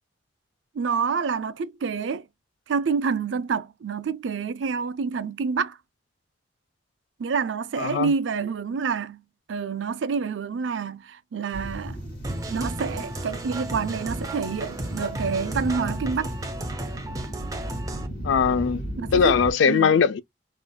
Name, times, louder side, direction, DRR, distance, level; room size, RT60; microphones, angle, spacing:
voice 1, 0.7-2.2 2.7-5.8 7.2-9.2 9.5-12.0 12.5-16.3 19.0-19.3 19.7-20.0, right 5 dB, 85° right, 0.4 m, -28 dB
voice 2, 7.8-8.1 18.2-18.8 19.1-20.2, left 6 dB, 90° left, 0.4 m, -20 dB
sound 1, 11.5-19.5, equal, 50° left, 2.5 m, -36 dB
sound 2, 12.2-18.1, right 1 dB, 20° right, 0.6 m, -34 dB
4.9 x 2.4 x 2.2 m
head